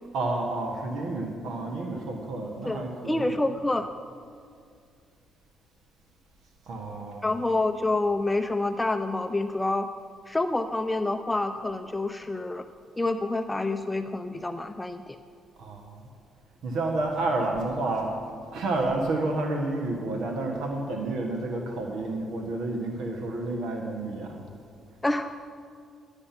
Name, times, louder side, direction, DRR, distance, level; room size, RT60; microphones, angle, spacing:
voice 1, 0.1-3.4 6.6-7.4 15.6-16.0 16.6-18.2 18.5-24.5, right 2 dB, 80° right, 2 dB, 1.4 m, -30 dB
voice 2, 2.6-3.9 7.2-9.9 10.3-12.6 13.0-15.2 25.0-25.3, left 2 dB, 15° left, 8 dB, 0.5 m, -27 dB
11.5 x 8.8 x 5.9 m, 2.3 s
cardioid pair, 90°, 0 cm